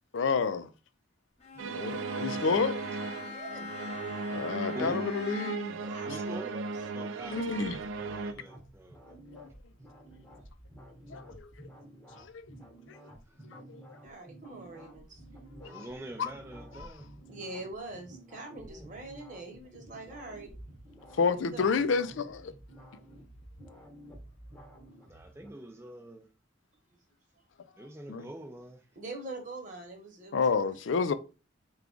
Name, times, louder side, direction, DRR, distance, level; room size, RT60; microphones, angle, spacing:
voice 1, 0.1-0.7 1.6-2.8 4.3-5.8 7.3-7.8 9.3-9.5 11.1-11.7 12.2-12.3 12.9-13.0 13.5-14.0 15.6-15.9 16.2-16.3 16.8-16.9 21.2-22.5 28.1-28.3 30.3-31.1, left 5 dB, 75° left, 0.4 m, -30 dB
Bowed string instrument, 1.4-5.8, left 4 dB, 35° left, 0.9 m, -44 dB
sound 1, 1.6-8.3, right 3 dB, 80° right, 0.4 m, -36 dB
voice 2, 3.2-3.7 5.8-6.7 14.0-15.2 15.6-15.7 17.3-20.6 21.3-21.7 29.0-30.7, right 2 dB, 40° right, 1.0 m, -44 dB
voice 3, 6.1-6.5 6.9-9.2 13.3-13.4 15.6-17.1 18.6-18.9 25.1-26.3 27.8-28.9, right 1 dB, 15° right, 0.4 m, -45 dB
sound 2, 7.2-25.5, right 1 dB, 5° left, 0.9 m, -51 dB
4.6 x 2.3 x 3.7 m
head